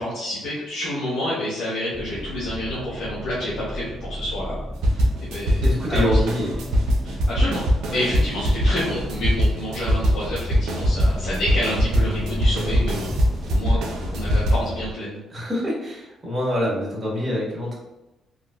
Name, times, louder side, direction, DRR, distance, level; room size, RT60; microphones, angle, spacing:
voice 1, 0.0-4.6 4.9-6.2 7.0-7.6 7.9-13.1 13.5-13.8 14.1-15.2, left 1 dB, 80° left, -9 dB, 0.9 m, -29 dB
sound 1, 1.9-14.9, left 1 dB, 5° left, 0.3 m, -33 dB
sound 2, 4.8-14.7, equal, 90° right, 0.6 m, -22 dB
voice 2, 5.6-6.6 15.3-17.8, left 1 dB, 25° right, -4 dB, 1.4 m, -25 dB
3.5 x 2.5 x 2.3 m, 0.96 s
cardioid pair, 90°, 0 cm